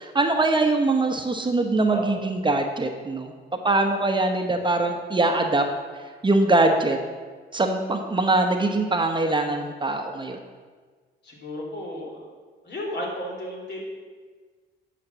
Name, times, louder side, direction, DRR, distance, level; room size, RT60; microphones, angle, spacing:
voice 1, 0.0-3.3 3.6-5.7 5.9-7.0 7.5-10.4, right 2 dB, 25° right, 4 dB, 1.0 m, -22 dB
voice 2, 11.2-12.2 12.6-13.8, equal, 60° left, -1 dB, 3.1 m, -33 dB
9.7 x 5.2 x 7.3 m, 1.5 s
cardioid pair, 90°, 20 cm